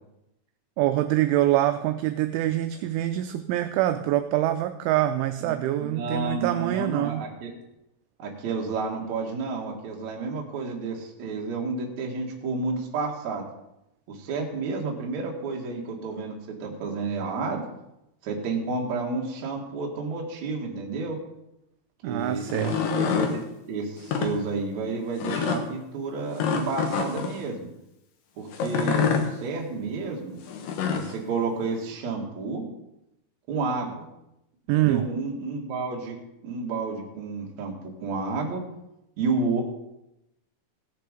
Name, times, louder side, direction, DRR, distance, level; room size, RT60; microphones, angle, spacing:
voice 1, 0.8-7.3 22.0-22.8 34.7-35.1, right 13 dB, 85° right, 8 dB, 2.8 m, -25 dB
voice 2, 5.8-7.5 8.2-13.4 14.1-17.6 18.2-21.2 22.0-23.4 23.7-27.7 28.4-30.4 30.9-32.6 33.5-34.1 34.7-36.2 36.4-38.6 39.2-39.6, right 4 dB, 50° right, -1 dB, 2.3 m, -31 dB
sound 1, 22.4-23.3 24.0-24.3 25.2-25.6 26.4-27.3 28.5-29.3 30.5-31.1, left 6 dB, 80° left, 2.0 m, -26 dB
17.5 x 6.9 x 5.2 m, 0.87 s
omnidirectional pair, 5.9 m